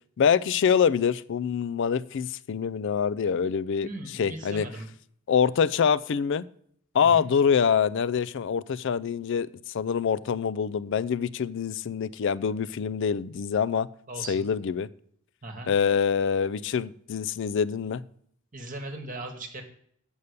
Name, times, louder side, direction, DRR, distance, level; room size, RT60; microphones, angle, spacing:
voice 1, 0.2-4.7 5.3-6.4 6.9-9.5 9.7-13.9 14.3-14.9 15.7-18.0, left 7 dB, 60° left, 0.4 m, -25 dB
voice 2, 3.8-4.9 7.0-7.3 14.1-14.5 15.4-15.7 18.5-19.6, right 2 dB, 40° right, 1.2 m, -38 dB
8.1 x 5.4 x 6.6 m
head